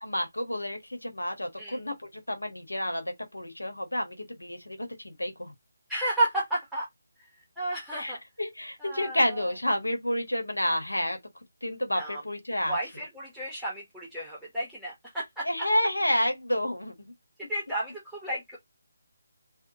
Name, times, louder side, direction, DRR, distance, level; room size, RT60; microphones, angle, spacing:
voice 1, 0.0-4.8 5.0-5.5 8.0-11.2 11.6-12.8 15.4-16.9, left 1 dB, 85° left, 1.0 m, -30 dB
voice 2, 5.9-6.9 7.2-7.3 7.6-8.2 8.8-9.4 11.9-12.2 12.7-15.5 17.5-18.6, right 1 dB, ahead, 0.8 m, -32 dB
3.6 x 2.0 x 2.7 m
figure-of-eight pair, 155°, 0 cm